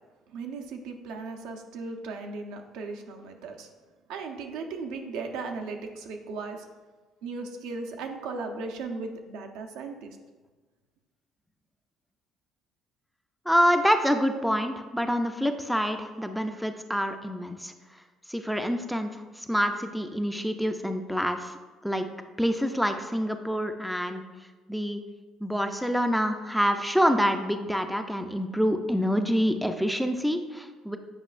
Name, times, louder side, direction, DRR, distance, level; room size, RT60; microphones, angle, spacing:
voice 1, 0.3-3.7 4.1-6.7 7.2-10.2, right 4 dB, 90° right, 3 dB, 0.7 m, -37 dB
voice 2, 13.5-17.7 18.3-21.5 21.8-22.1 22.4-24.2 24.7-25.0 25.4-31.0, equal, ahead, 6 dB, 0.4 m, -26 dB
8.0 x 5.2 x 2.5 m, 1.3 s
cardioid pair, 130°, 0 cm